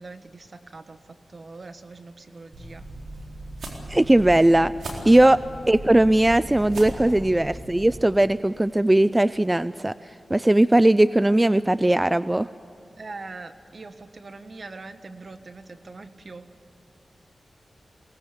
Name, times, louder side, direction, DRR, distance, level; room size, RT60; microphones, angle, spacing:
voice 1, 0.0-2.8 13.0-16.5, right 3 dB, 55° right, 9 dB, 1.4 m, -42 dB
sound 1, 2.5-7.9, right 1 dB, 85° right, 4.0 m, -37 dB
voice 2, 3.9-4.7 5.1-5.4 5.7-9.9 10.3-12.5, right 1 dB, 20° right, 15 dB, 0.4 m, -18 dB
23.0 x 19.0 x 8.3 m, 3.0 s
cardioid pair, 45°, 0 cm